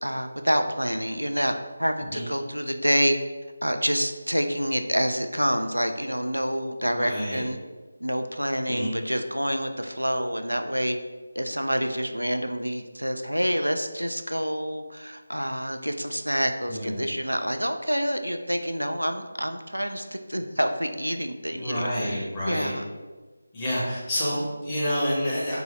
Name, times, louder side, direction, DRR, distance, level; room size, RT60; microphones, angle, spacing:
voice 1, 0.0-1.5 1.8-3.2 3.6-7.6 8.0-11.0 11.4-22.9, equal, 90° right, 6 dB, 0.3 m, -27 dB
voice 2, 7.0-7.4 8.7-9.0 16.7-17.0 21.5-22.7 23.5-25.6, equal, 15° left, -8 dB, 1.0 m, -28 dB
3.8 x 2.4 x 4.0 m, 1.3 s
figure-of-eight pair, 160°, 0 cm